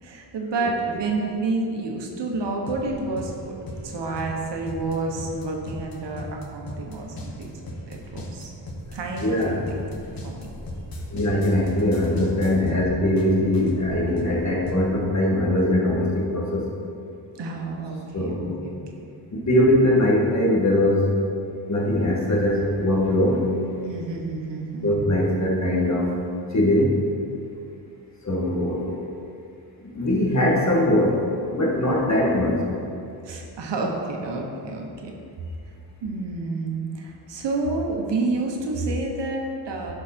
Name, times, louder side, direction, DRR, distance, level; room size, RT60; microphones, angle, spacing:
voice 1, 0.0-3.5 3.8-7.5 7.9-8.5 8.9-9.4 9.7-9.8 10.2-10.5 12.6-12.8 17.4-19.0 23.8-24.9 33.2-35.1 36.0-39.9, right 3 dB, 85° right, 1 dB, 1.4 m, -29 dB
sound 1, 2.7-14.9, equal, 60° left, 1.6 m, -37 dB
voice 2, 9.2-9.7 11.1-16.7 18.1-18.6 19.3-21.2 21.7-23.5 24.8-26.1 26.5-27.0 28.2-29.0 29.9-31.2 31.5-32.6, left 1 dB, 40° left, -3 dB, 2.0 m, -21 dB
11.0 x 5.2 x 4.5 m, 2.5 s
cardioid pair, 80°, 41 cm